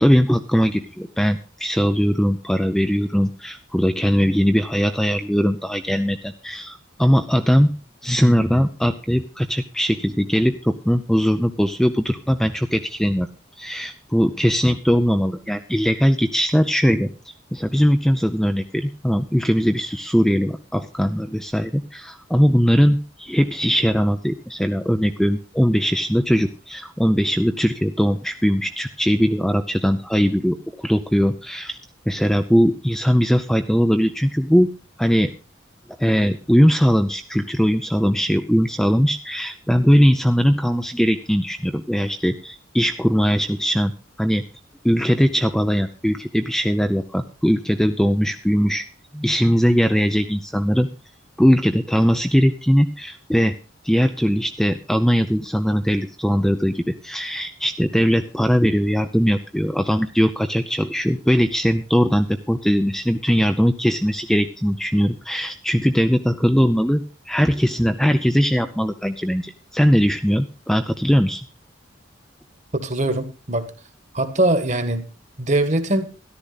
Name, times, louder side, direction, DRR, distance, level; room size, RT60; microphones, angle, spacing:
voice 1, 0.0-7.7 8.0-13.3 13.6-17.1 17.5-31.8 32.1-34.7 35.0-35.3 36.0-43.9 44.2-44.4 44.8-48.8 49.1-50.9 51.4-53.5 53.8-71.4, equal, 5° left, 7 dB, 0.6 m, -20 dB
voice 2, 72.7-73.7 74.1-75.1 75.4-76.1, right 1 dB, 35° right, 9 dB, 1.6 m, -21 dB
13.5 x 12.0 x 4.1 m, 0.33 s
head